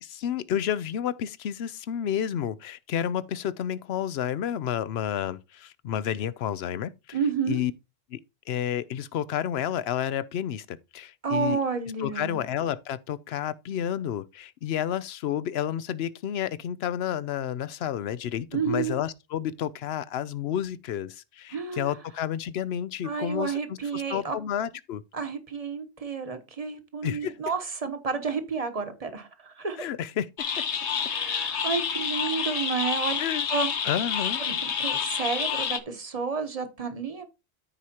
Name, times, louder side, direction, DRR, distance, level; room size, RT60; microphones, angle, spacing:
voice 1, 0.0-7.2 7.5-7.7 8.1-8.2 8.5-11.6 12.0-25.0 27.0-27.3 29.8-30.3 33.2-33.5 33.8-34.4, left 10 dB, 70° left, 0.8 m, -30 dB
voice 2, 7.1-7.6 11.2-12.5 18.5-19.0 21.5-21.9 23.0-24.3 25.1-29.9 31.0-33.2 33.5-33.7 34.4-37.3, right 5 dB, 35° right, 1.2 m, -30 dB
sound 1, 30.4-35.8, left 7 dB, 85° left, 1.3 m, -29 dB
13.5 x 4.8 x 2.9 m
omnidirectional pair, 1.1 m